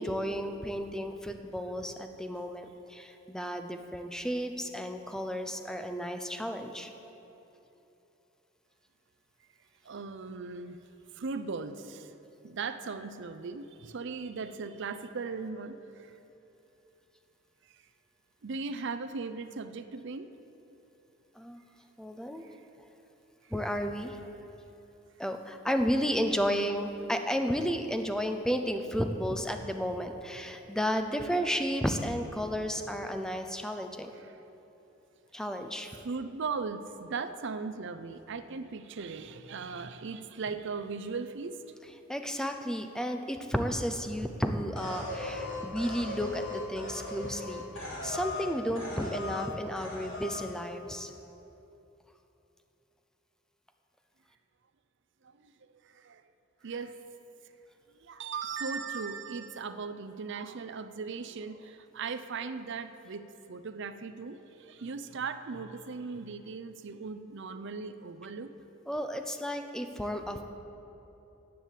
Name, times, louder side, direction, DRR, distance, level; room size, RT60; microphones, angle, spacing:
voice 1, 0.0-6.9 21.4-21.6 22.0-22.4 23.5-24.2 25.2-34.1 35.3-35.9 42.1-51.1 68.9-70.4, equal, 5° left, 6 dB, 0.6 m, -32 dB
voice 2, 9.8-10.8 11.2-12.1 12.4-16.1 18.4-20.3 22.4-22.5 26.5-26.6 34.2-34.3 35.9-41.6 55.4-55.5 55.9-56.2 56.6-57.0 58.0-68.5, right 4 dB, 60° right, 10 dB, 0.6 m, -38 dB
sound 1, 44.8-48.5 48.8-49.5 49.8-50.5, left 2 dB, 65° left, 3.0 m, -38 dB
10.0 x 8.3 x 7.5 m, 3.0 s
head